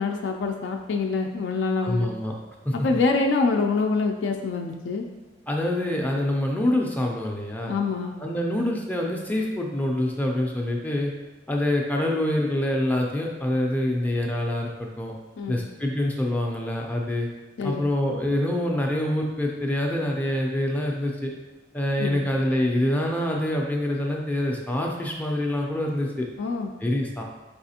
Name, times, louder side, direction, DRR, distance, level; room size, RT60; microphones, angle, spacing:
voice 1, 0.0-2.1 2.7-5.1 7.7-8.2 15.4-15.6 17.6-17.9 22.0-22.2 26.4-26.7, left 4 dB, 75° left, 3 dB, 0.4 m, -25 dB
voice 2, 1.8-2.3 2.7-2.8 5.5-7.7 8.2-11.1 11.5-15.1 15.5-17.3 17.6-21.3 21.7-26.3 26.8-27.2, left 1 dB, 10° left, 0 dB, 0.4 m, -25 dB
4.8 x 3.3 x 2.8 m, 1.1 s
head